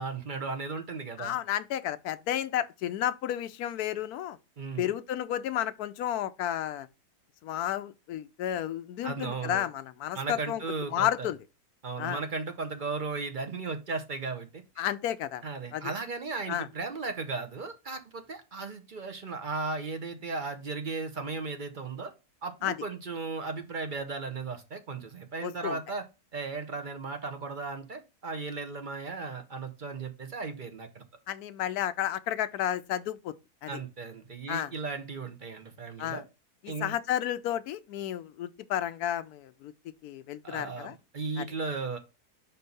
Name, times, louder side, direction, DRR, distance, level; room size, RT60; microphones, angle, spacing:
voice 1, 0.0-1.3 4.6-4.9 9.0-9.6 10.1-11.3 11.8-14.6 15.4-22.1 22.4-26.0 26.3-31.0 33.7-36.2 36.7-36.9 40.4-42.0, right 4 dB, 45° right, 0.7 m, -36 dB
voice 2, 1.2-4.4 4.8-6.9 7.4-10.6 10.9-11.4 12.0-12.2 14.8-15.4 15.7-15.9 16.5-16.7 22.6-22.8 25.4-25.8 31.3-33.3 33.6-33.8 34.5-34.7 36.0-36.2 36.6-39.7 40.0-41.0 41.4-41.5, left 11 dB, 75° left, 1.0 m, -32 dB
5.4 x 4.5 x 5.2 m
omnidirectional pair, 1.7 m